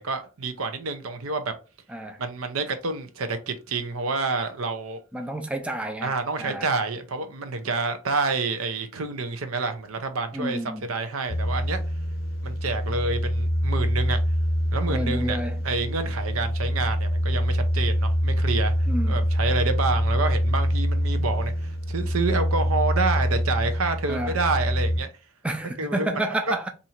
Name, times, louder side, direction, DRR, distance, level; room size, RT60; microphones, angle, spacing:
voice 1, 0.0-1.5 2.2-5.0 6.0-11.8 12.4-14.2 14.7-18.7 19.1-25.1 25.8-26.2 26.5-26.6, right 3 dB, 80° right, 0.6 m, -28 dB
voice 2, 5.1-6.7 10.3-10.9 14.9-15.6 18.9-19.3 24.1-24.4 25.4-26.7, right 1 dB, 5° right, 0.4 m, -30 dB
sound 1, 11.3-25.0, equal, 70° left, 0.7 m, -25 dB
2.8 x 2.6 x 4.3 m
head